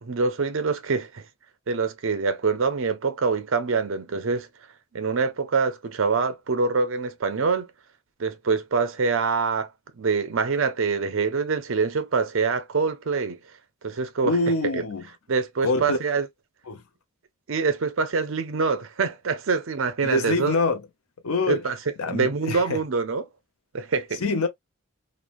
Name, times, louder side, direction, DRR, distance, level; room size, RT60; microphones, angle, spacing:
voice 1, 0.0-1.2 1.7-4.5 4.9-7.7 8.2-9.7 10.0-13.4 13.8-14.4 14.7-14.8 15.3-16.3 17.5-20.5 21.5-21.8 22.0-23.2 23.7-24.2, right 4 dB, 60° right, 0.5 m, -25 dB
voice 2, 14.2-15.0 15.6-16.0 16.7-16.8 20.0-20.8 21.2-21.6 22.0-22.8 24.2-24.5, left 2 dB, 80° left, 0.7 m, -25 dB
3.2 x 2.0 x 2.4 m
head